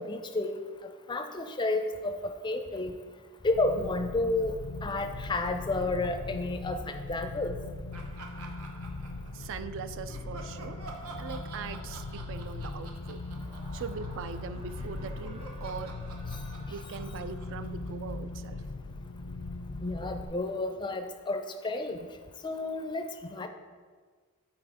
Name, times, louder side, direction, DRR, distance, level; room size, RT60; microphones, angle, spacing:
voice 1, 0.0-3.0 3.4-7.6 19.8-22.1 22.4-23.5, left 2 dB, 20° left, 7 dB, 0.4 m, -31 dB
sound 1, 3.5-20.3, left 3 dB, 80° left, 0.5 m, -40 dB
Laughter, 7.9-9.7 10.1-14.5 14.8-18.4, right 3 dB, 90° right, 0.9 m, -48 dB
voice 2, 9.3-10.8 11.2-13.2 13.7-16.0 16.7-18.6, right 6 dB, 60° right, 12 dB, 0.3 m, -41 dB
Screaming, 13.1-18.0, right 2 dB, 25° right, 0.7 m, -54 dB
5.8 x 4.3 x 4.9 m, 1.5 s
head